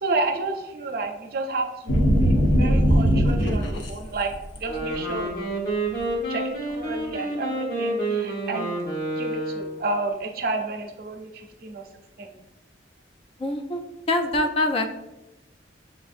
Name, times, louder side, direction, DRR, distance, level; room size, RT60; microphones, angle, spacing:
voice 1, 0.0-2.0 2.2-4.3 4.6-5.6 6.3-8.8 9.2-11.8 12.2-12.3, right 3 dB, 55° right, 5 dB, 0.5 m, -30 dB
sound 1, 1.9-3.9 4.3-4.8, equal, 75° left, 0.7 m, -19 dB
Wind instrument woodwind instrument, 4.7-9.8, right 2 dB, 55° left, 1.2 m, -29 dB
voice 2, 13.4-13.8 14.1-14.9, left 1 dB, 30° left, 6 dB, 0.3 m, -24 dB
7.0 x 2.5 x 2.5 m, 0.98 s
head